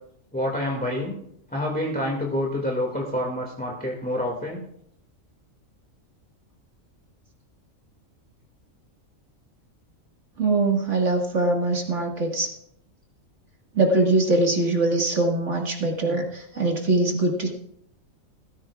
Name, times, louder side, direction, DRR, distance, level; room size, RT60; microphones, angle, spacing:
voice 1, 0.3-1.2 1.5-4.6, left 1 dB, 5° left, -2 dB, 2.1 m, -27 dB
voice 2, 10.4-12.5 13.7-17.5, right 2 dB, 60° right, 0 dB, 2.2 m, -22 dB
17.5 x 15.0 x 2.4 m, 0.71 s
omnidirectional pair, 1.4 m